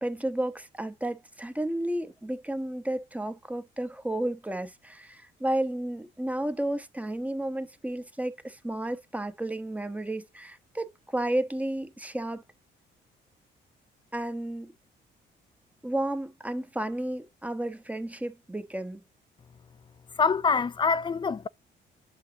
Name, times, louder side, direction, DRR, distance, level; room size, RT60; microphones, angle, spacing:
voice 1, 0.0-12.4 14.1-14.7 15.8-19.0, right 1 dB, 5° right, 0.9 m, -32 dB
voice 2, 20.2-21.5, left 5 dB, 25° left, 0.4 m, -25 dB
8.0 x 5.5 x 2.8 m
cardioid pair, 90°, 20 cm